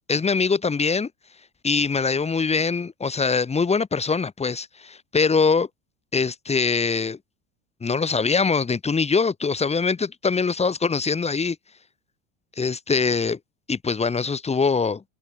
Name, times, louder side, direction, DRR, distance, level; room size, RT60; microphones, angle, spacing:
voice 1, 0.1-1.1 1.6-5.7 6.1-7.2 7.8-11.6 12.6-13.4 13.7-15.0, left 5 dB, 20° left, 3.3 m, -23 dB
supercardioid pair, 105°, 33 cm